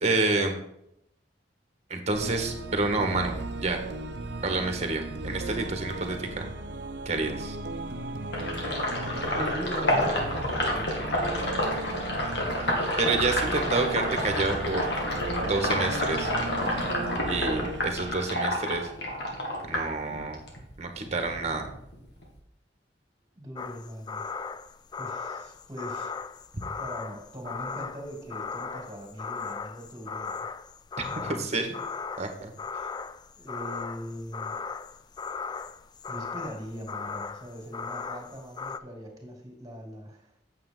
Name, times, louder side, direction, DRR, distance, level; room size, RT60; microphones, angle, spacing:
voice 1, 0.0-0.6 1.9-3.8 4.4-6.5 7.0-7.6 13.0-14.9 15.4-16.3 17.2-18.9 19.7-20.4 20.8-21.7 31.4-31.7 32.2-32.5, right 3 dB, 40° right, 5 dB, 1.5 m, -28 dB
sound 1, 2.1-18.1, right 2 dB, 80° right, 0.8 m, -36 dB
Sink (filling or washing), 8.3-20.6 20.9-22.4, left 1 dB, 70° left, 2.4 m, -29 dB
voice 2, 9.3-11.4 23.3-24.2 25.0-26.1 26.8-30.4 31.1-31.6 33.4-34.6 36.1-40.3, equal, 20° right, 1 dB, 2.8 m, -41 dB
sound 2, 23.6-38.8, left 5 dB, 25° left, 0.3 m, -37 dB
8.8 x 7.8 x 3.9 m, 0.77 s
head